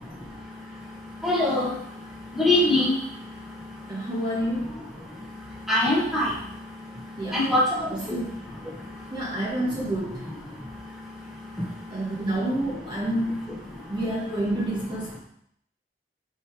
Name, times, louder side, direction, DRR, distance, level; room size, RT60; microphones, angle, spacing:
voice 1, 0.0-4.1 4.7-8.2 8.6-9.2 10.5-12.1 13.7-13.9, left 1 dB, ahead, -7 dB, 1.7 m, -28 dB
voice 2, 3.9-4.8 7.2-7.5 7.9-8.4 9.1-10.3 11.9-13.5 13.9-15.2, right 1 dB, 25° right, -5 dB, 1.6 m, -29 dB
5.5 x 5.5 x 4.7 m, 0.70 s
head